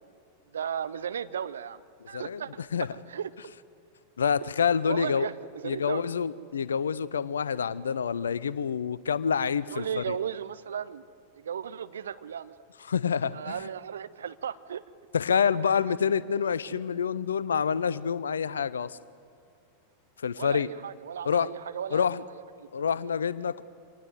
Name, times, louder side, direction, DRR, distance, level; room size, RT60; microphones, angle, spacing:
voice 1, 0.5-1.8 2.1-2.6 3.1-3.5 4.8-6.1 9.7-11.1 11.3-12.5 13.3-14.8 20.3-22.0 22.6-22.9, right 8 dB, 65° right, 14 dB, 0.7 m, -35 dB
voice 2, 2.1-2.9 4.2-5.3 5.6-10.2 12.9-13.6 15.1-19.0 20.2-20.7 21.2-21.5 21.9-22.2 22.7-23.6, left 7 dB, 70° left, 19 dB, 0.6 m, -27 dB
25.5 x 19.5 x 7.9 m, 2.5 s
figure-of-eight pair, 90°, 0 cm